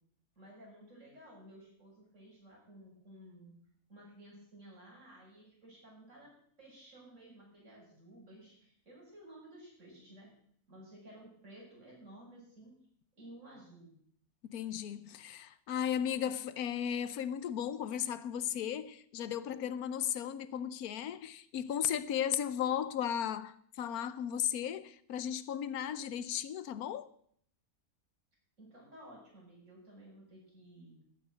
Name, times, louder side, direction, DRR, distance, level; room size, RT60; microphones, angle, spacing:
voice 1, 0.3-3.6 3.9-6.3 6.6-10.3 10.7-12.7 13.2-13.9 28.6-31.0, right 1 dB, 55° right, 6.9 m, -55 dB
voice 2, 14.5-27.1, left 9 dB, 90° left, 1.2 m, -35 dB
13.5 x 9.7 x 6.2 m
omnidirectional pair, 1.5 m